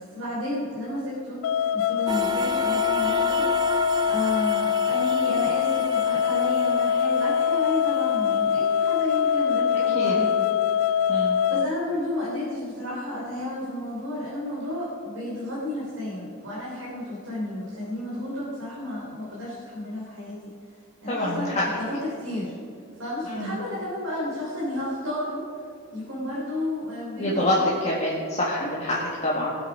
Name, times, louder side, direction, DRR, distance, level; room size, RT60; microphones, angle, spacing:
voice 1, 0.0-3.5 4.0-10.6 11.5-20.4 21.0-22.5 23.0-25.6 25.9-27.7 28.8-29.0, left 1 dB, 75° right, -7 dB, 3.4 m, -32 dB
sound 1, 1.4-11.7, left 8 dB, 75° left, 0.3 m, -23 dB
sound 2, 2.1-8.3, right 3 dB, 20° right, 0.3 m, -33 dB
voice 2, 9.7-10.1 11.1-11.4 21.1-21.6 23.2-23.5 27.2-27.6 27.8-29.6, left 1 dB, 30° left, -6 dB, 1.8 m, -26 dB
20.5 x 7.9 x 5.0 m, 2.4 s
head